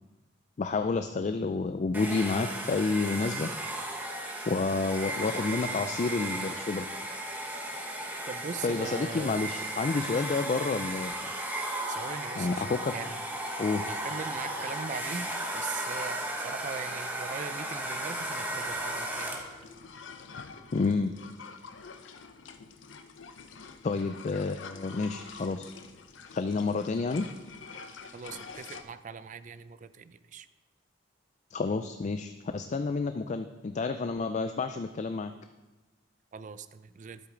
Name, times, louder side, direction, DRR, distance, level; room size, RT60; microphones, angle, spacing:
voice 1, 0.6-3.5 4.5-6.9 8.6-11.1 12.4-12.9 13.6-13.9 20.7-21.1 23.8-25.7 26.3-27.3 31.5-35.3, left 4 dB, 40° left, 8 dB, 0.4 m, -29 dB
Domestic sounds home sounds, 1.9-19.6, right 1 dB, 10° right, 1.0 m, -35 dB
voice 2, 8.3-9.4 11.9-13.2 13.8-19.4 28.1-30.5 36.3-37.2, right 5 dB, 40° right, 13 dB, 0.4 m, -41 dB
sound 1, 18.0-28.8, left 5 dB, 75° left, 0.6 m, -47 dB
11.5 x 8.1 x 3.8 m, 1.1 s
head